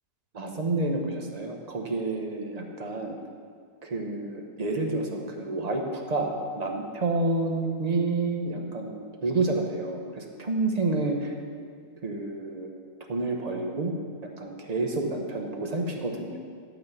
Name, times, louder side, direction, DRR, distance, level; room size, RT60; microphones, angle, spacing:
voice 1, 0.3-3.2 3.8-8.9 9.2-11.3 12.0-12.7 13.1-13.9 14.4-16.4, right 2 dB, 35° right, 2 dB, 0.7 m, -29 dB
12.0 x 4.2 x 7.0 m, 2.1 s
omnidirectional pair, 1.7 m